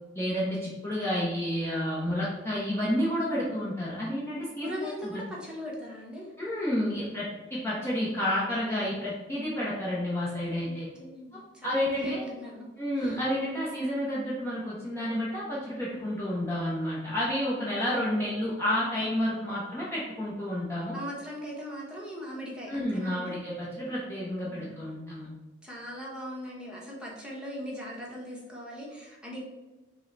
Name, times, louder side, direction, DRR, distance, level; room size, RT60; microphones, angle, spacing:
voice 1, 0.1-5.2 6.4-10.9 11.6-12.2 12.8-21.0 22.7-25.3, equal, 15° left, -7 dB, 0.8 m, -30 dB
voice 2, 4.6-6.3 10.6-12.7 12.9-13.2 20.9-23.3 24.4-24.8 25.6-29.4, equal, 5° right, -5 dB, 1.1 m, -40 dB
5.4 x 2.2 x 3.9 m, 1.1 s
head